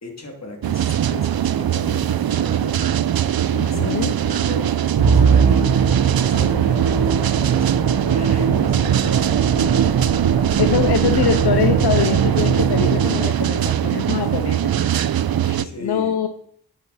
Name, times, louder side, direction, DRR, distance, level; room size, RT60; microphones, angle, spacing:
voice 1, 0.0-1.3 1.6-2.8 3.6-4.7 5.1-9.5 15.6-16.2, left 2 dB, 45° left, 1 dB, 2.6 m, -35 dB
sound 1, 0.6-15.7, right 10 dB, 70° right, 0.5 m, -21 dB
voice 2, 3.5-4.1 10.6-14.7 15.3-16.3, left 8 dB, 80° left, 8 dB, 0.7 m, -23 dB
Musical instrument, 5.0-13.5, right 6 dB, 90° right, 1.0 m, -20 dB
10.5 x 8.0 x 4.1 m, 0.65 s
wide cardioid pair, 80°, 38 cm